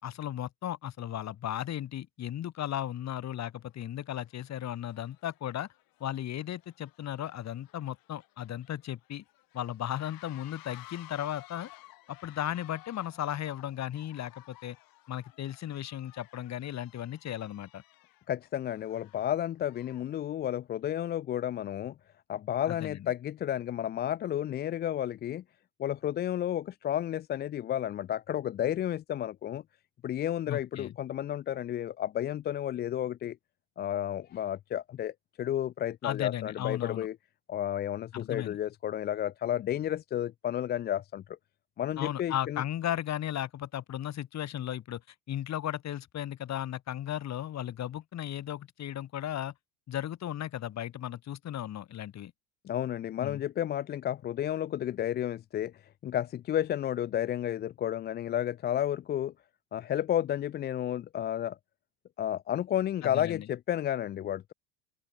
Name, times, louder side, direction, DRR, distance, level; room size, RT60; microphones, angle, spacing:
voice 1, 0.0-5.7 6.0-9.2 9.5-11.7 12.1-14.8 15.1-17.8 22.7-23.1 30.5-30.9 36.0-37.1 38.1-38.6 42.0-45.0 45.3-49.5 49.9-52.3 53.2-53.4 63.0-63.5, left 11 dB, 45° left, 4.4 m, -35 dB
sound 1, 3.6-3.8 4.2-20.2, left 19 dB, 65° left, 6.2 m, -56 dB
voice 2, 18.3-21.9 22.3-25.4 25.8-29.6 30.0-33.4 33.8-37.1 37.5-41.4 41.8-42.6 52.6-55.7 56.0-59.3 59.7-61.6 62.2-64.5, left 11 dB, 25° left, 0.4 m, -32 dB
open air
supercardioid pair, 110°, 38 cm